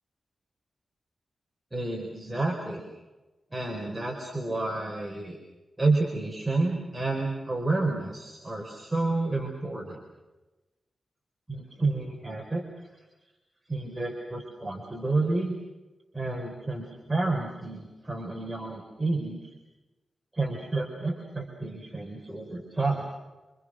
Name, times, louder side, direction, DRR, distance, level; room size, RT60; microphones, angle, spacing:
voice 1, 1.7-2.8 3.5-5.4 5.8-10.0 11.5-12.9 13.7-15.5 16.1-19.4 20.3-23.1, right 2 dB, 15° right, 0 dB, 4.6 m, -30 dB
28.0 x 27.5 x 6.4 m, 1.1 s
wide cardioid pair, 165°, 0 cm